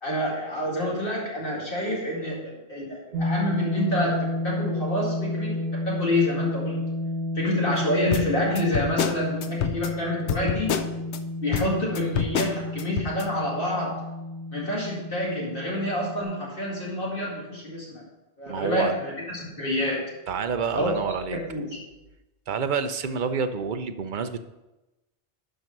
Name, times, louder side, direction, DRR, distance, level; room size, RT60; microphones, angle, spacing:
voice 1, 0.0-6.8 7.3-10.7 11.4-14.0 14.5-18.0 18.4-20.0 20.7-20.9 21.3-21.8, left 1 dB, 55° left, -5 dB, 2.4 m, -28 dB
sound 1, 3.1-16.2, left 1 dB, 90° right, 1.5 m, -31 dB
sound 2, 8.1-11.2 11.5-13.2, left 8 dB, 80° left, 0.9 m, -28 dB
voice 2, 18.5-18.9 20.3-21.4 22.5-24.4, right 6 dB, 50° right, 9 dB, 0.7 m, -28 dB
12.0 x 4.6 x 5.3 m, 1.0 s
omnidirectional pair, 1.2 m